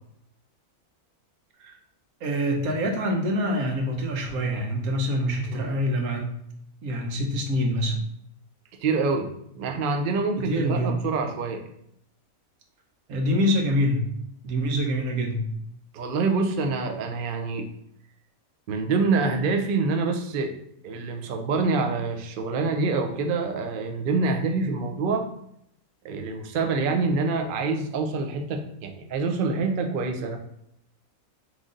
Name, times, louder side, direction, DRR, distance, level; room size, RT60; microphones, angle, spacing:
voice 1, 2.2-6.3 6.8-8.0 10.4-11.0 13.1-14.0 14.4-15.4, equal, 80° right, 2 dB, 1.3 m, -25 dB
voice 2, 8.8-9.3 9.5-11.6 15.9-17.6 18.7-20.5 20.8-25.2 26.0-30.4, right 4 dB, 60° right, 4 dB, 0.5 m, -26 dB
3.8 x 3.2 x 3.7 m, 0.75 s
omnidirectional pair, 1.5 m